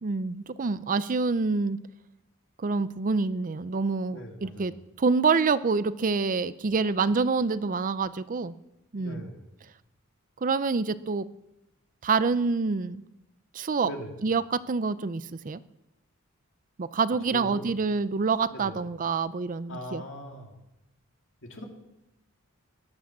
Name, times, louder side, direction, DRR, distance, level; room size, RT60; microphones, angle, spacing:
voice 1, 0.0-1.8 2.6-8.6 8.9-9.3 10.4-11.3 12.0-13.0 13.5-13.9 14.2-15.6 16.8-20.0, right 4 dB, 40° right, 15 dB, 0.5 m, -27 dB
voice 2, 4.1-4.8 9.0-9.5 13.8-14.1 17.3-17.7 18.5-18.8 19.7-20.6 21.4-21.6, equal, 60° left, 2 dB, 2.9 m, -41 dB
17.5 x 11.0 x 7.3 m, 0.91 s
head